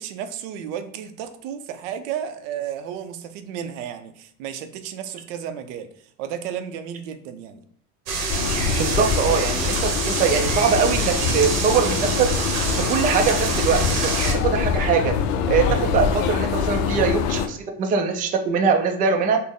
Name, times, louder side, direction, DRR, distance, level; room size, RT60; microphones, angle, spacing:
voice 1, 0.0-7.6, right 9 dB, 90° right, 0.5 m, -33 dB
sound 1, 8.1-14.3, right 3 dB, 45° right, 0.8 m, -26 dB
sound 2, 8.3-17.5, left 6 dB, 80° left, 0.5 m, -25 dB
voice 2, 8.7-9.8 10.0-12.3 12.9-14.2 14.4-15.1 15.5-19.4, right 6 dB, 25° right, 0.3 m, -22 dB
4.1 x 2.0 x 3.6 m
cardioid pair, 145°, 36 cm